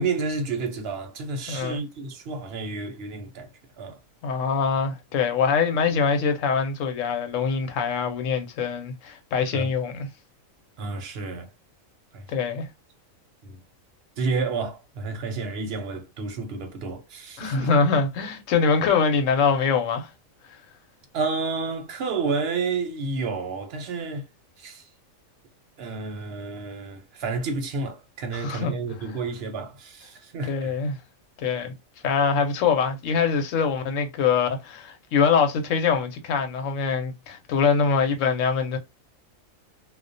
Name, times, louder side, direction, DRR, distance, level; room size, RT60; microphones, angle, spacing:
voice 1, 0.0-3.5 3.8-4.0 9.5-9.7 10.8-11.5 12.1-12.2 13.4-13.6 14.2-17.7 21.1-24.2 24.6-24.8 25.8-30.7, right 4 dB, 60° right, 0.8 m, -30 dB
voice 2, 1.5-1.8 4.2-10.1 12.3-12.7 17.4-20.1 28.3-28.8 30.5-31.0 31.4-31.7 32.0-38.8, left 5 dB, 70° left, 1.0 m, -23 dB
2.3 x 2.1 x 2.5 m
omnidirectional pair, 1.4 m